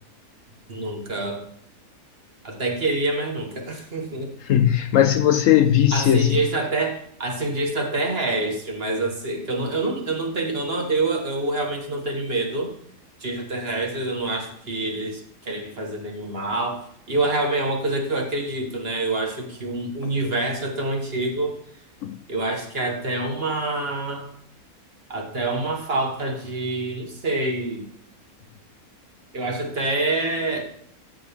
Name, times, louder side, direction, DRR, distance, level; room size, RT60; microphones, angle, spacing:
voice 1, 0.7-1.4 2.4-4.3 5.9-12.7 13.2-21.5 22.3-24.3 25.1-27.9 29.3-30.7, right 2 dB, 40° right, 1.6 m, -26 dB
voice 2, 4.5-6.4 20.0-20.1 22.0-22.2, left 10 dB, 70° left, 0.9 m, -18 dB
13.0 x 6.2 x 3.5 m
omnidirectional pair, 1.6 m